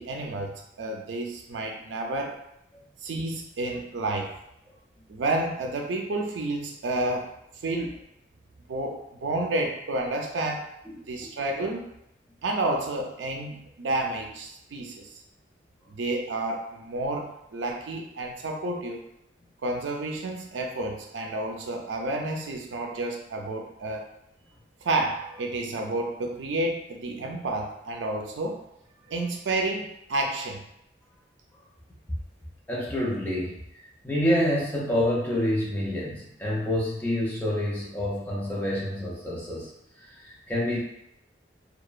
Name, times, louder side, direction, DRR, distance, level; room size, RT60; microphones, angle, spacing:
voice 1, 0.0-2.4 3.0-4.3 5.1-7.3 7.6-7.9 8.7-10.7 10.9-11.9 12.4-15.2 15.9-19.0 19.6-24.0 24.8-28.6 29.1-30.6, right 2 dB, 85° right, 2 dB, 0.4 m, -30 dB
voice 2, 32.7-39.7 40.0-40.8, left 1 dB, 10° left, -6 dB, 0.5 m, -28 dB
2.9 x 2.1 x 2.3 m, 0.79 s
head